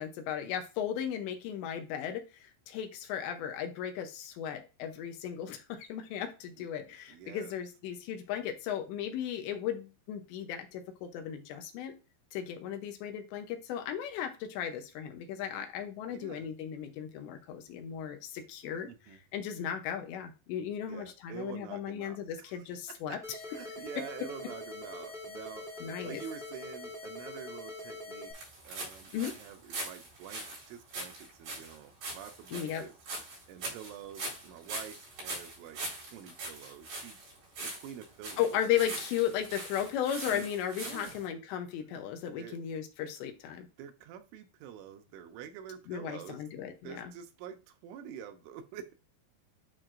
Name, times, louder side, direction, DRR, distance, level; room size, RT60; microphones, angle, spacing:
voice 1, 0.0-11.9 12.3-18.9 19.3-23.4 25.8-26.2 29.1-29.3 32.5-32.9 38.4-43.7 45.9-47.1, left 9 dB, 80° left, 6 dB, 2.9 m, -36 dB
voice 2, 7.1-7.5 16.1-16.5 18.8-19.2 20.9-22.6 23.1-23.2 23.5-28.3 28.6-32.9 33.5-35.8 36.1-37.2 37.6-38.6 40.3-40.5 40.8-41.2 42.4-42.6 43.8-46.4 46.8-48.9, right 9 dB, 85° right, 6 dB, 3.3 m, -47 dB
sound 1, 23.2-28.3, left 2 dB, ahead, 1.7 m, -43 dB
sound 2, 28.3-41.2, right 2 dB, 60° right, 5.9 m, -42 dB
10.5 x 4.5 x 2.5 m, 0.31 s
omnidirectional pair, 5.4 m